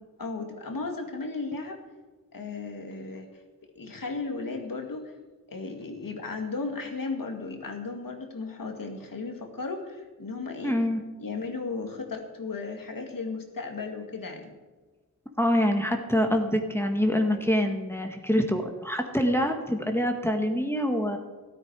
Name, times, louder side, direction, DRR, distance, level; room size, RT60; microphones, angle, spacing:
voice 1, 0.2-1.8 2.3-3.3 3.8-5.1 5.5-10.8 11.2-14.6, left 3 dB, 70° left, 3 dB, 2.2 m, -35 dB
voice 2, 10.6-11.0 15.4-21.2, equal, 5° left, 3 dB, 1.7 m, -25 dB
13.5 x 12.5 x 4.8 m, 1.3 s
wide cardioid pair, 65°, 35 cm